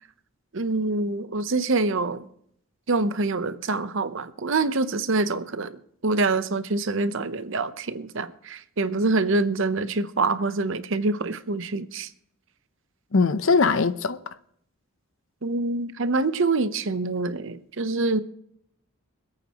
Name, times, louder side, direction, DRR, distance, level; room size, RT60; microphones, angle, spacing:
voice 1, 0.5-2.3 2.9-12.1 15.4-18.2, right 3 dB, 60° right, 0.8 m, -25 dB
voice 2, 13.1-14.2, left 4 dB, 60° left, 0.7 m, -20 dB
26.0 x 8.8 x 3.0 m
head